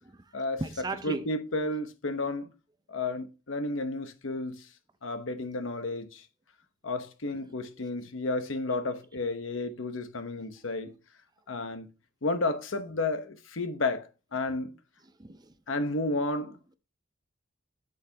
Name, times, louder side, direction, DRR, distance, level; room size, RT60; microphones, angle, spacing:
voice 1, 0.0-1.3 7.4-7.8 14.5-14.6 15.0-15.5 16.4-16.5, right 3 dB, 20° right, 0.5 m, -39 dB
voice 2, 1.0-2.5 2.9-4.7 5.0-6.2 6.8-10.9 11.5-11.9 12.2-14.7 15.7-16.6, left 2 dB, 70° left, 1.0 m, -32 dB
9.9 x 6.7 x 2.8 m
head